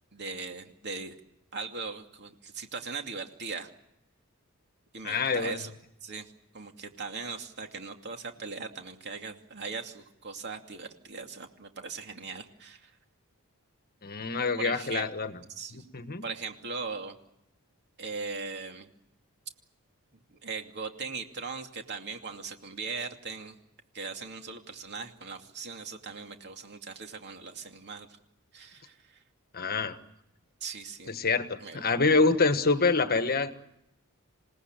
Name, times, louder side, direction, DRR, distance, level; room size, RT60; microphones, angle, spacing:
voice 1, 0.1-1.2 1.5-3.7 4.9-5.7 6.0-6.3 6.5-12.9 14.6-15.1 15.5-15.8 16.2-17.2 18.0-18.9 20.4-23.5 23.9-28.1 28.5-29.0 30.6-31.1 31.6-31.8, right 4 dB, 50° right, 4 dB, 2.6 m, -39 dB
voice 2, 5.0-5.6 14.0-15.4 15.7-16.3 29.5-30.0 31.1-33.5, left 4 dB, 45° left, 9 dB, 1.5 m, -26 dB
28.0 x 18.0 x 9.0 m, 0.82 s
head